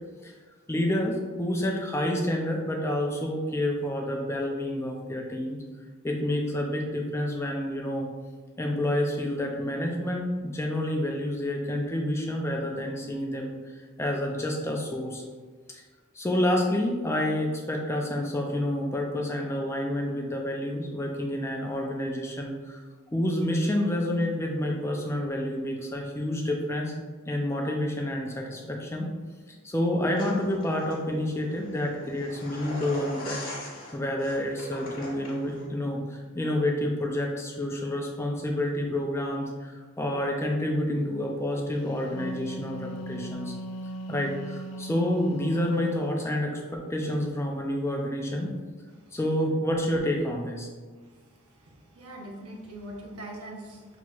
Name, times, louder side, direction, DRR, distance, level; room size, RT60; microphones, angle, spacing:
voice 1, 0.7-5.6 6.0-8.1 8.6-15.2 16.1-22.8 23.1-26.9 27.3-29.1 29.5-43.5 44.1-48.6 49.1-50.7, left 1 dB, 10° left, 0 dB, 0.4 m, -29 dB
sound 1, 30.1-35.7, left 1 dB, 40° left, 1.3 m, -41 dB
Wind instrument woodwind instrument, 41.9-46.1, right 1 dB, 85° left, 0.4 m, -38 dB
voice 2, 51.9-54.0, right 1 dB, 90° right, 0 dB, 0.8 m, -41 dB
5.9 x 3.0 x 2.3 m, 1.5 s
head